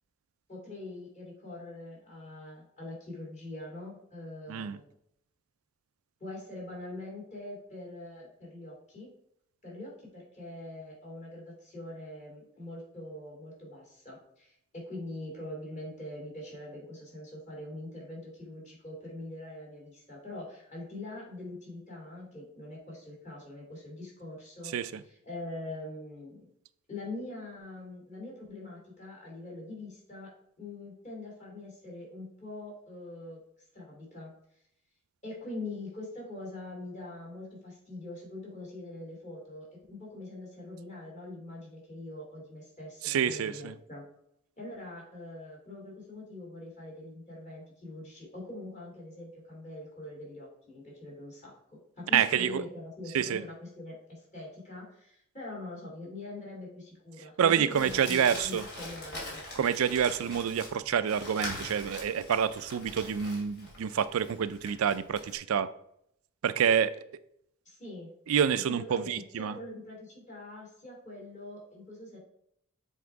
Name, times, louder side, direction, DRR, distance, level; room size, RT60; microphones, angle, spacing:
voice 1, 0.5-4.9 6.2-9.1 9.6-24.7 25.0-26.5 26.9-33.4 33.7-34.3 35.2-44.0 44.6-51.5 52.0-59.4 67.6-68.1 68.5-72.2, left 2 dB, 35° left, 2.8 m, -43 dB
voice 2, 43.0-43.7 52.1-52.6 53.1-53.4 57.4-58.6 59.5-65.7 66.4-66.9 68.3-69.5, right 8 dB, 90° right, 0.4 m, -27 dB
Crumpling crinkling, 57.7-65.3, left 1 dB, 55° left, 2.6 m, -43 dB
7.2 x 3.6 x 4.6 m
head